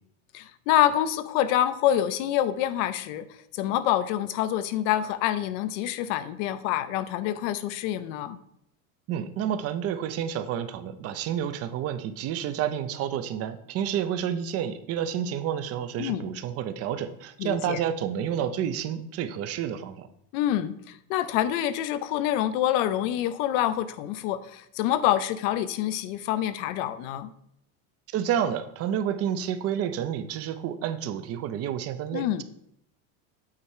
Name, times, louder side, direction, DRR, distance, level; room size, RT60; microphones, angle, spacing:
voice 1, 0.3-3.2 3.5-8.4 16.0-16.3 17.4-17.8 20.3-27.3 32.1-32.4, left 12 dB, 60° left, 13 dB, 0.7 m, -26 dB
voice 2, 9.1-20.1 28.1-32.4, right 9 dB, 35° right, 12 dB, 0.6 m, -30 dB
8.4 x 4.3 x 4.8 m, 0.75 s
supercardioid pair, 140°, 41 cm